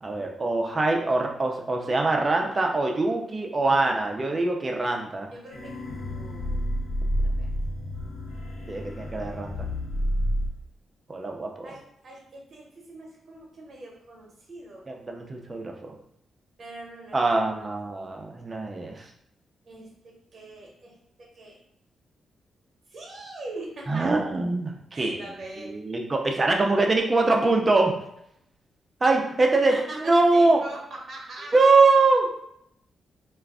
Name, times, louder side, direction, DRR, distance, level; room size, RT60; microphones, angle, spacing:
voice 1, 0.0-5.3 8.7-9.5 11.1-11.7 14.9-15.9 17.1-19.0 23.9-25.2 25.7-27.9 29.0-29.7 30.0-30.6 31.5-32.3, right 3 dB, 25° right, 1 dB, 0.4 m, -23 dB
voice 2, 5.3-5.7 6.1-6.6 7.2-7.5 11.6-14.8 16.6-17.7 19.6-21.6 22.9-24.1 24.9-25.7 29.6-31.6, right 2 dB, 45° right, -2 dB, 0.9 m, -42 dB
sound 1, 5.5-10.5, equal, 80° left, 0.7 m, -29 dB
2.3 x 2.2 x 3.5 m, 0.75 s
wide cardioid pair, 145°, 0 cm